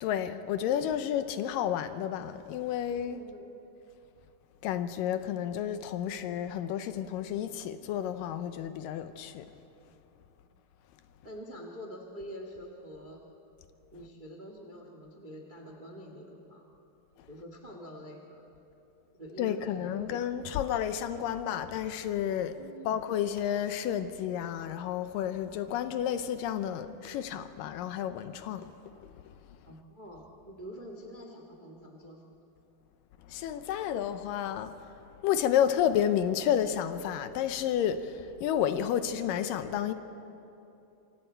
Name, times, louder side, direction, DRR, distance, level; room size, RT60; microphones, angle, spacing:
voice 1, 0.0-3.2 4.6-9.5 19.4-22.6 22.9-28.7 29.0-29.1 33.3-34.8 35.2-39.9, left 10 dB, 80° left, 2.2 m, -31 dB
voice 2, 3.1-3.6 11.2-13.2 13.9-16.7 17.3-18.5 19.2-20.1 22.5-23.0 29.7-32.3, equal, 50° right, 0.5 m, -46 dB
26.5 x 24.5 x 4.5 m
omnidirectional pair, 4.2 m